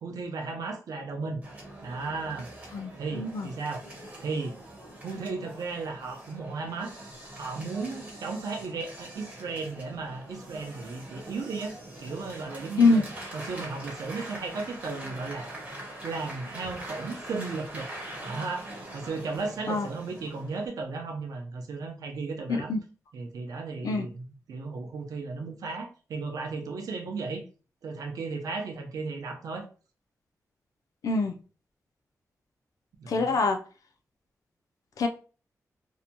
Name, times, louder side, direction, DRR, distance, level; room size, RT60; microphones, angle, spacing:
voice 1, 0.0-1.4 1.8-2.5 3.0-3.9 4.2-4.6 5.0-6.9 7.3-13.0 13.3-15.5 16.0-17.9 18.2-22.7 23.1-27.4 27.8-29.7 33.0-33.4, right 4 dB, 90° right, 3 dB, 0.5 m, -35 dB
sound 1, 1.4-20.7, right 1 dB, 25° right, 1.1 m, -43 dB
voice 2, 2.7-3.5 12.8-13.0 19.7-19.9 22.5-22.8 23.8-24.1 31.0-31.4 33.1-33.6 35.0-35.1, left 3 dB, 80° left, 6 dB, 0.4 m, -24 dB
2.7 x 2.1 x 2.7 m, 0.37 s
wide cardioid pair, 110°, 6 cm